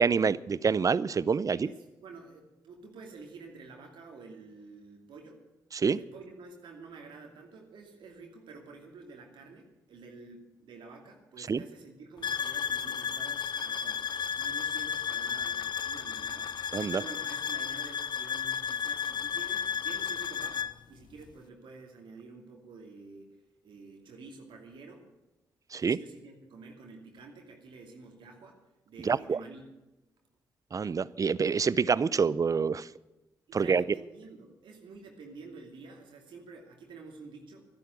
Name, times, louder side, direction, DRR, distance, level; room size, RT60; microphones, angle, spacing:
voice 1, 0.0-1.7 5.7-6.0 11.5-11.6 16.7-17.0 25.7-26.0 29.1-29.4 30.7-32.9 33.5-33.8, right 5 dB, 45° right, 20 dB, 0.6 m, -26 dB
voice 2, 1.5-5.4 5.8-14.1 14.4-16.6 16.9-23.4 23.6-25.1 25.8-28.6 28.8-29.6 33.5-37.7, right 3 dB, 75° right, 1 dB, 2.5 m, -49 dB
sound 1, 12.2-20.7, left 7 dB, 60° left, 0.7 m, -33 dB
12.0 x 11.0 x 8.3 m, 1.0 s
supercardioid pair, 50°, 8 cm